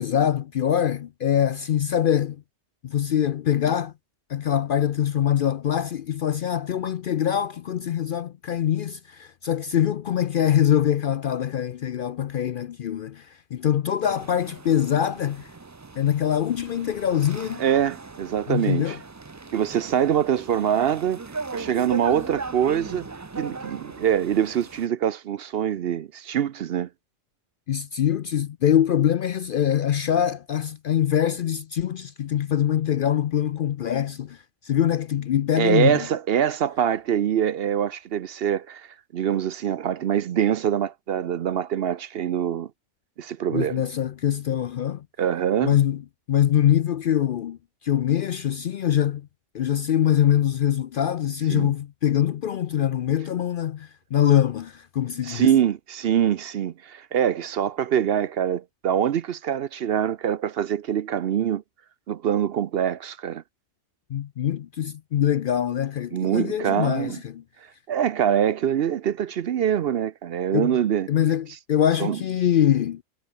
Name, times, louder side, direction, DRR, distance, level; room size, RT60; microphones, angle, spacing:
voice 1, 0.0-2.4 2.8-3.9 4.3-13.2 13.5-15.5 16.0-17.6 18.5-19.0 27.7-34.4 34.6-36.0 43.5-45.0 45.6-46.0 46.3-47.6 47.8-49.2 49.5-55.5 64.1-67.4 70.5-70.7 71.1-73.0, left 10 dB, 60° left, 0.6 m, -23 dB
sound 1, 14.0-24.9, right 3 dB, 25° right, 0.4 m, -39 dB
voice 2, 17.6-19.0 19.5-21.2 21.5-23.1 23.4-26.9 35.6-42.7 43.2-43.9 45.2-45.8 51.5-51.7 55.2-61.6 62.1-63.4 66.1-67.2 67.9-71.1 72.0-72.2, right 9 dB, 60° right, 0.8 m, -24 dB
omnidirectional pair, 1.3 m